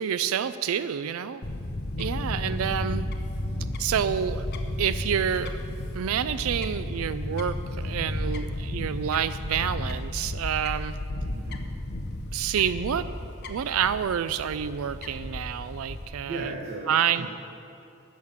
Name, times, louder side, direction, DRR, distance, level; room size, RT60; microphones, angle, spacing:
voice 1, 0.0-1.4 2.0-3.1 3.8-4.5 4.8-5.6 5.9-10.9 12.3-13.1 13.5-16.5 16.9-17.3, right 8 dB, 85° right, 14 dB, 0.4 m, -28 dB
Fowl / Bird, 1.4-16.1, left 1 dB, 50° left, 0.9 m, -33 dB
voice 2, 2.0-2.4 11.2-11.6 16.3-17.3, right 2 dB, 50° right, -2 dB, 1.3 m, -37 dB
14.0 x 6.5 x 7.2 m, 2.7 s
head